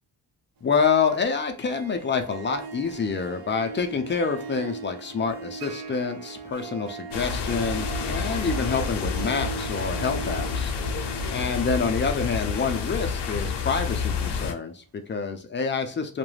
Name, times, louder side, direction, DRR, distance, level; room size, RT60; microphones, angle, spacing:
voice 1, 0.6-10.7 11.3-16.2, left 5 dB, 30° left, 6 dB, 0.4 m, -27 dB
Harp, 0.6-14.5, right 5 dB, 60° right, 0.6 m, -40 dB
sound 1, 7.1-14.5, left 5 dB, 75° left, 0.6 m, -29 dB
2.3 x 2.1 x 3.1 m, 0.39 s
cardioid pair, 95°, 41 cm